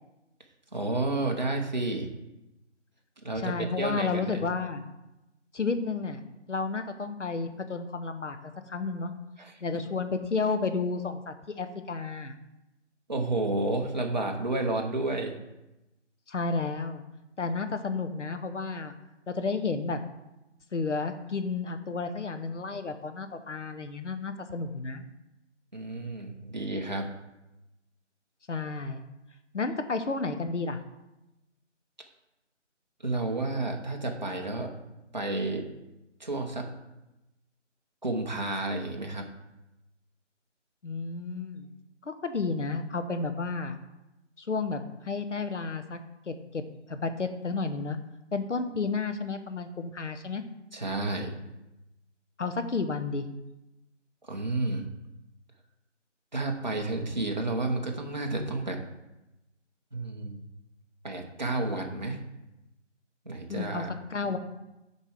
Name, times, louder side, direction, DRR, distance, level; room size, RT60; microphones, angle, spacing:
voice 1, 0.7-2.1 3.2-4.4 9.4-9.6 13.1-15.4 25.7-27.1 33.0-34.7 35.1-35.7 36.2-36.7 38.0-39.3 50.7-51.3 54.2-54.9 56.3-58.8 59.9-60.4 61.0-62.2 63.2-63.9, right 2 dB, 40° right, 1 dB, 0.9 m, -31 dB
voice 2, 3.4-4.8 5.5-6.2 6.5-9.1 9.6-12.4 16.3-17.0 17.4-18.9 19.3-20.0 20.7-25.0 28.5-29.0 29.5-30.8 40.8-41.7 42.0-43.7 44.4-46.0 46.3-46.6 46.9-48.0 48.3-50.4 52.4-53.3 63.5-64.4, left 4 dB, 75° left, 8 dB, 0.9 m, -31 dB
6.7 x 4.6 x 4.8 m, 0.96 s
figure-of-eight pair, 170°, 37 cm